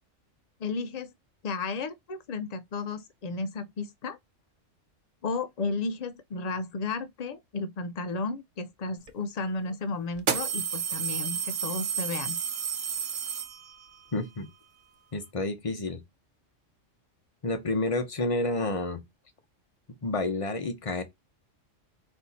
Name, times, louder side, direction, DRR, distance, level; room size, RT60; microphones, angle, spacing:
voice 1, 0.6-1.1 1.4-4.2 5.2-12.4, left 3 dB, 75° left, 0.3 m, -33 dB
sound 1, 9.1-9.2 10.2-14.0, right 7 dB, 50° right, 0.7 m, -31 dB
voice 2, 14.1-14.5 15.1-16.0 17.4-19.0 20.0-21.0, left 2 dB, 30° left, 0.8 m, -29 dB
4.3 x 2.7 x 4.0 m
omnidirectional pair, 1.3 m